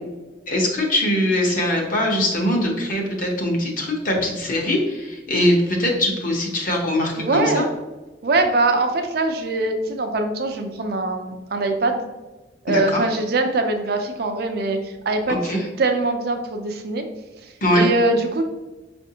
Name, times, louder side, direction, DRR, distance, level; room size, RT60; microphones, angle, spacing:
voice 1, 0.5-7.7 12.7-13.0 15.4-15.6 17.6-17.9, left 1 dB, 45° left, -1 dB, 0.9 m, -21 dB
voice 2, 7.2-7.7 8.2-12.0 12.6-17.0 17.7-18.4, right 2 dB, 55° right, 5 dB, 0.5 m, -22 dB
5.5 x 2.5 x 2.8 m, 1.1 s
head